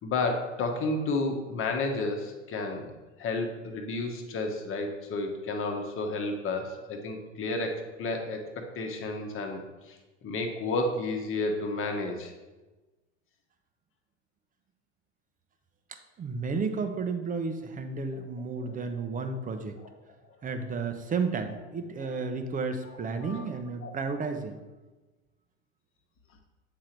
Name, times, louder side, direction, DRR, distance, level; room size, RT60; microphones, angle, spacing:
voice 1, 0.0-2.9 3.2-10.0 10.2-12.3 22.0-22.2 23.2-23.4 23.8-23.9, left 2 dB, 35° left, 4 dB, 1.2 m, -31 dB
voice 2, 16.2-19.8 20.4-24.6, right 4 dB, 20° right, 7 dB, 0.7 m, -32 dB
7.9 x 3.8 x 4.4 m, 1.2 s
hypercardioid pair, 90°, 36 cm